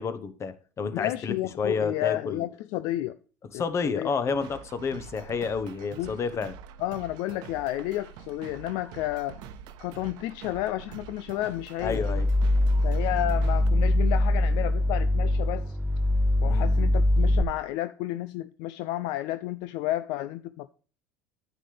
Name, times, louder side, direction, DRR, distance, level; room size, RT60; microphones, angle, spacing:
voice 1, 0.0-2.5 3.5-6.5 11.8-12.3 16.4-16.9, left 5 dB, 35° left, 1.2 m, -30 dB
voice 2, 0.9-3.2 3.5-4.4 6.0-6.1 6.8-9.4 9.8-12.0 12.8-15.8 16.4-20.7, left 15 dB, 65° left, 0.4 m, -31 dB
sound 1, 4.3-13.7, right 7 dB, 60° right, 0.9 m, -46 dB
sound 2, 11.8-17.4, left 1 dB, 15° right, 0.9 m, -23 dB
9.8 x 8.0 x 3.4 m
hypercardioid pair, 75°, 8 cm